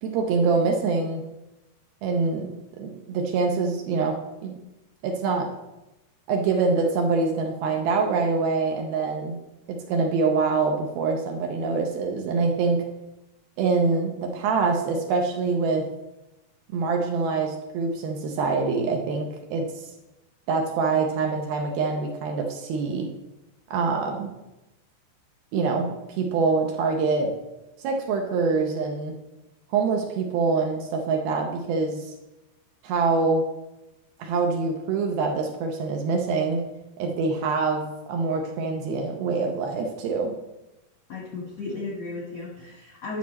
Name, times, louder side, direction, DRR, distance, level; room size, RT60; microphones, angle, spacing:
voice 1, 0.0-1.2 2.0-2.5 2.8-4.5 5.0-5.5 6.3-9.4 9.7-12.9 13.6-15.9 16.7-19.9 20.5-23.1 23.7-24.3 25.5-27.3 27.8-29.2 29.7-32.2 32.8-33.5 34.2-36.6 37.0-40.3, right 4 dB, 75° right, 2 dB, 2.4 m, -25 dB
voice 2, 41.1-43.2, left 2 dB, 65° left, -4 dB, 1.5 m, -34 dB
10.5 x 6.5 x 4.2 m, 0.98 s
omnidirectional pair, 4.9 m